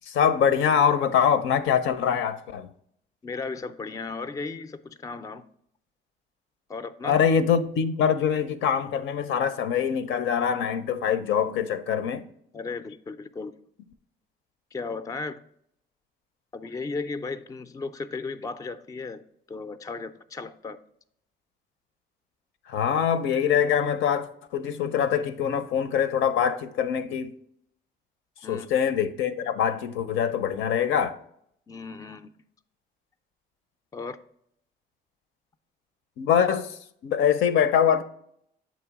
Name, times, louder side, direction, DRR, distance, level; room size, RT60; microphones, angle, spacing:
voice 1, 0.1-2.7 7.0-12.3 22.7-27.3 28.5-31.2 36.2-38.0, left 8 dB, 80° left, 0.5 m, -24 dB
voice 2, 3.2-5.4 6.7-7.2 12.5-13.6 14.7-15.4 16.5-20.8 28.4-28.9 31.7-32.3 33.9-34.2, left 4 dB, 15° left, 0.3 m, -35 dB
7.7 x 3.0 x 4.7 m
cardioid pair, 90°, 20 cm